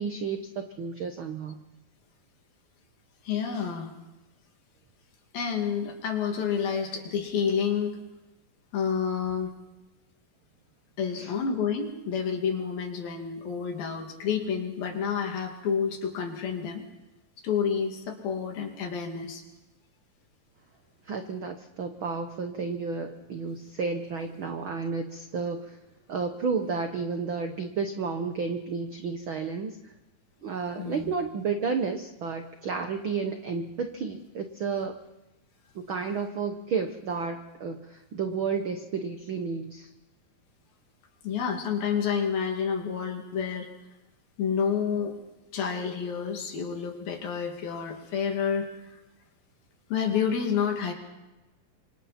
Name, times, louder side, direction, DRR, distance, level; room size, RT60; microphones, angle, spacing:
voice 1, 0.0-1.6 11.2-11.3 21.1-25.8 26.1-29.9 30.4-35.0 35.7-39.9, right 5 dB, 80° right, 6 dB, 1.1 m, -32 dB
voice 2, 3.2-3.9 5.3-8.0 8.7-9.5 11.0-16.9 17.4-19.4 30.8-31.1 41.2-43.7 44.4-45.2 45.5-48.9 49.9-50.9, left 7 dB, 90° left, 2 dB, 4.4 m, -29 dB
28.5 x 26.0 x 4.3 m, 1.0 s
omnidirectional pair, 4.0 m